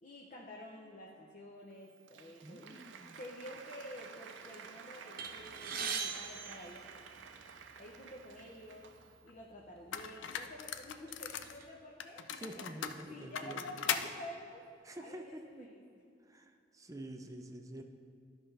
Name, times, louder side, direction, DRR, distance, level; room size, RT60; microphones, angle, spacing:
voice 1, 0.0-2.9 3.2-6.9 7.8-8.9 9.2-12.7 13.1-14.6 15.0-16.0, left 1 dB, 45° left, -1 dB, 0.7 m, -50 dB
Applause, 1.7-9.3, right 6 dB, 80° right, 0.5 m, -52 dB
voice 2, 2.4-3.2 12.3-13.7 14.8-15.7 16.3-17.8, right 1 dB, 20° right, 5 dB, 0.5 m, -48 dB
sound 1, 5.2-7.5 8.3-8.5 8.8-9.0 9.8-10.0 10.5-11.6, right 6 dB, 50° right, 0.8 m, -41 dB
sound 2, 9.3-9.4 9.9-11.6 12.0-14.1, left 8 dB, 90° left, 0.4 m, -39 dB
12.5 x 5.6 x 3.3 m, 2.4 s
head